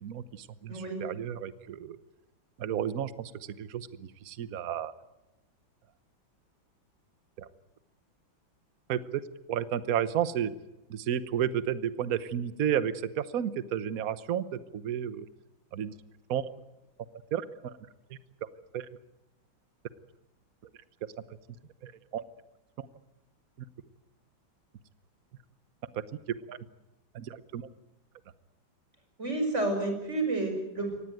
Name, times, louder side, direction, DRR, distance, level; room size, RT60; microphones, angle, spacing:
voice 1, 0.0-2.0 2.6-4.9 7.4-7.5 8.9-9.2 9.5-10.5 10.9-15.3 15.7-15.9 16.3-16.6 17.3-17.8 18.1-18.5 18.7-18.9 21.8-22.2 22.8-22.9 25.9-26.0 26.5-26.6 27.1-27.7, right 9 dB, 50° right, 14 dB, 1.3 m, -32 dB
voice 2, 0.7-1.0 29.2-31.0, right 2 dB, 35° right, 4 dB, 5.9 m, -30 dB
24.5 x 18.5 x 9.3 m, 0.97 s
omnidirectional pair, 2.2 m